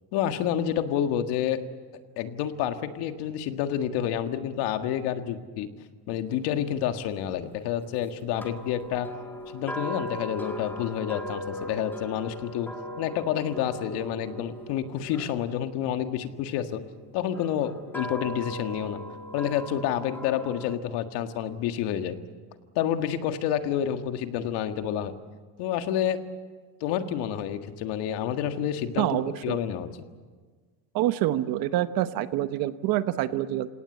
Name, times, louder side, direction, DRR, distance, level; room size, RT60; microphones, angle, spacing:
voice 1, 0.1-1.6 2.2-5.7 6.1-9.1 9.5-12.7 13.0-16.8 17.1-19.0 19.3-22.1 22.7-25.1 25.6-26.2 26.8-29.9, left 10 dB, 60° left, 7 dB, 1.8 m, -29 dB
sound 1, 8.4-16.5 17.3-20.7, equal, 5° left, 1.8 m, -39 dB
voice 2, 29.0-29.6 30.9-33.7, right 13 dB, 55° right, 12 dB, 1.0 m, -26 dB
28.5 x 18.0 x 8.5 m, 1.5 s
cardioid pair, 160°, 44 cm